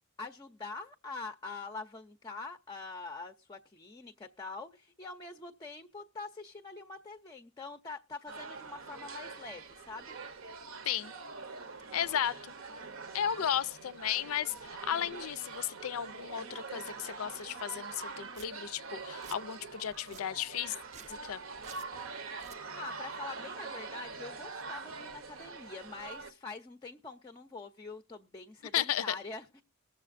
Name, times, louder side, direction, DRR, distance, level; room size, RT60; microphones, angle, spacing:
voice 1, 0.2-10.2 12.0-12.3 22.5-29.6, left 3 dB, 20° left, 0.5 m, -45 dB
sound 1, 8.3-26.3, right 4 dB, 70° right, 0.8 m, -44 dB
voice 2, 11.9-12.5 13.1-20.7 21.1-21.4 28.7-29.2, left 10 dB, 90° left, 0.4 m, -34 dB
Domestic sounds home sounds, 17.9-18.0 18.3-18.5 19.0-19.4 19.9-20.2 20.8-21.2 21.6-21.9 22.3-22.6, right 7 dB, 35° right, 0.4 m, -52 dB
21.0 x 7.1 x 2.5 m
head